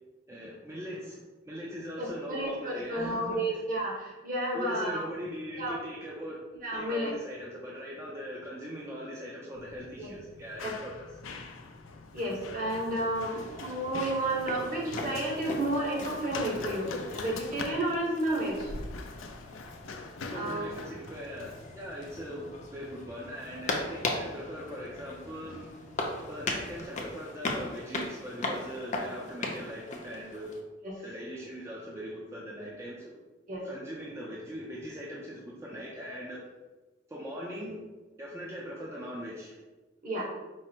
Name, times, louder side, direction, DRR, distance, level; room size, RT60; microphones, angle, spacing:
voice 1, 0.3-3.6 4.5-6.4 6.7-11.1 20.2-25.7 26.3-30.5 31.0-33.1 33.6-36.5 37.1-37.9 38.2-39.6, equal, 15° right, -4 dB, 0.5 m, -40 dB
voice 2, 2.0-5.1 5.6-5.8 6.6-7.1 10.0-10.1 10.6-10.7 12.1-18.7 20.3-20.8 30.8-30.9 33.5-33.7 40.0-40.2, right 1 dB, 45° right, -3 dB, 1.1 m, -31 dB
Run, 9.6-26.9, left 3 dB, 85° left, 0.4 m, -44 dB
sound 1, 13.1-30.6, left 2 dB, 40° left, 0.6 m, -39 dB
4.7 x 2.0 x 4.3 m, 1.2 s
head